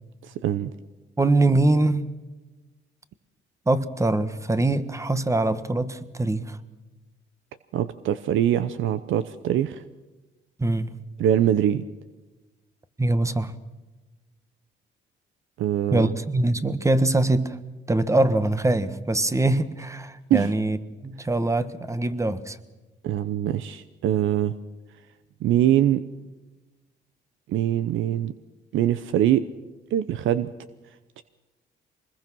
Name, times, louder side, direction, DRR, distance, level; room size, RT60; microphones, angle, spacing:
voice 1, 0.2-0.7 7.7-9.8 11.2-11.9 15.6-16.1 20.3-20.5 23.0-24.5 25.4-26.0 27.5-28.4 28.7-29.4 29.9-30.5 31.2-31.3, right 11 dB, 80° right, 13 dB, 0.8 m, -23 dB
voice 2, 1.2-2.1 3.7-6.6 10.6-10.9 13.0-13.5 15.9-17.6 17.9-20.8 21.0-22.6, right 2 dB, 15° right, 13 dB, 1.4 m, -23 dB
24.5 x 21.0 x 6.2 m, 1.2 s
cardioid pair, 90°, 20 cm